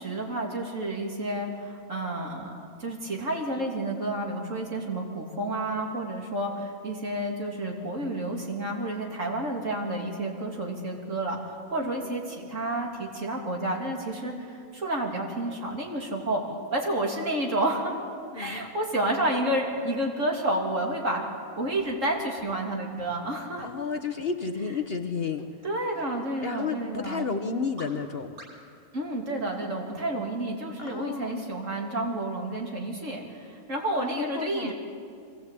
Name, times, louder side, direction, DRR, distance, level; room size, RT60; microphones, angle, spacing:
voice 1, 0.0-16.4 16.7-18.0 18.3-21.3 21.6-23.7 25.6-27.3 28.9-34.7, right 1 dB, 60° right, 0 dB, 3.2 m, -30 dB
voice 2, 18.3-18.7 23.6-25.4 26.4-28.4 30.8-31.5 34.0-34.7, left 5 dB, 45° left, 7 dB, 1.1 m, -32 dB
sound 1, 21.8-21.9 22.4-22.5 23.0-23.1 23.6-23.7 24.2-24.3 24.8-24.9 25.4-25.5 26.0-26.1 26.6-26.7 27.2-27.3 27.8-27.9 28.4-28.5, right 1 dB, 80° right, 4.2 m, -45 dB
23.5 x 18.5 x 8.4 m, 2.4 s
omnidirectional pair, 1.5 m